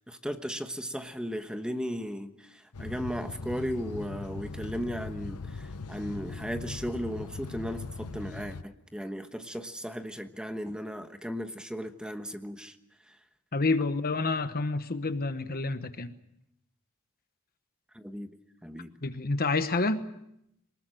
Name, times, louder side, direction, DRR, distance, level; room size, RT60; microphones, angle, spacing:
voice 1, 0.1-12.8 17.9-18.3 18.6-18.9, equal, 5° right, 1.2 m, -36 dB
sound 1, 2.7-8.6, left 3 dB, 90° left, 0.8 m, -40 dB
voice 2, 13.5-16.1 19.0-20.0, left 3 dB, 45° left, 1.1 m, -28 dB
23.5 x 20.0 x 7.7 m
head